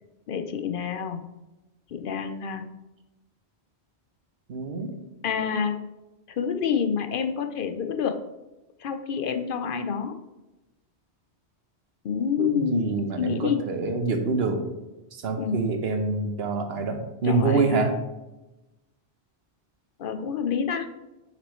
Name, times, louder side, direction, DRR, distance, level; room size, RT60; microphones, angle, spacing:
voice 1, 0.3-1.2 1.9-2.6 5.2-5.7 6.4-8.2 8.8-10.1 12.0-13.6 15.4-15.6 17.2-17.9 20.0-20.9, left 7 dB, 60° left, 7 dB, 0.7 m, -28 dB
voice 2, 4.5-4.9 12.4-14.6 15.1-17.9, right 4 dB, 70° right, 5 dB, 1.1 m, -26 dB
6.1 x 6.0 x 3.1 m, 1.0 s
omnidirectional pair, 1.1 m